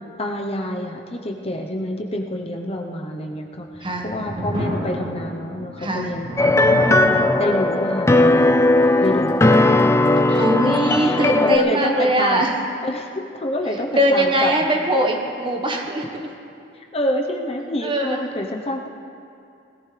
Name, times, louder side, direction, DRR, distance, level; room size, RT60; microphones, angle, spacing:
voice 1, 0.2-7.0 7.4-8.5 9.0-10.4 11.0-12.5 12.8-14.5 16.9-18.9, left 1 dB, 35° left, 2 dB, 0.9 m, -27 dB
sound 1, 3.6-10.7, equal, 45° right, 3.5 m, -31 dB
voice 2, 5.8-6.1 10.4-12.5 13.9-16.1 17.8-18.2, right 1 dB, 30° right, 2 dB, 1.4 m, -21 dB
sound 2, 6.4-11.6, left 2 dB, 15° left, 0.4 m, -17 dB
20.5 x 15.0 x 3.4 m, 2.6 s
head